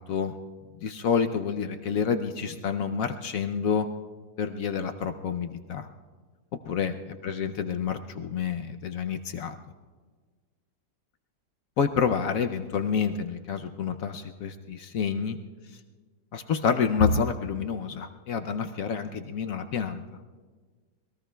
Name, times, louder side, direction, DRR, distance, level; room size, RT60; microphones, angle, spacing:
voice 1, 0.8-3.9 4.4-5.9 6.6-9.6 11.8-15.4 16.3-20.0, left 6 dB, 65° left, 6 dB, 0.8 m, -28 dB
27.5 x 21.0 x 2.3 m, 1.5 s
omnidirectional pair, 2.0 m